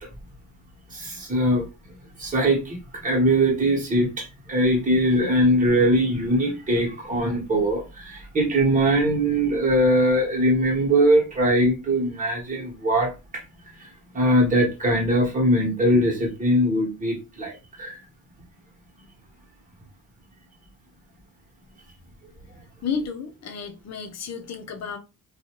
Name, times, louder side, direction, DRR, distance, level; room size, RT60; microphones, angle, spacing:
voice 1, 0.9-1.6 2.2-13.4 14.1-18.0, right 1 dB, 25° right, 1.2 m, -21 dB
voice 2, 22.8-25.0, left 6 dB, 50° left, 0.6 m, -32 dB
2.6 x 2.3 x 3.0 m
cardioid pair, 110°, 33 cm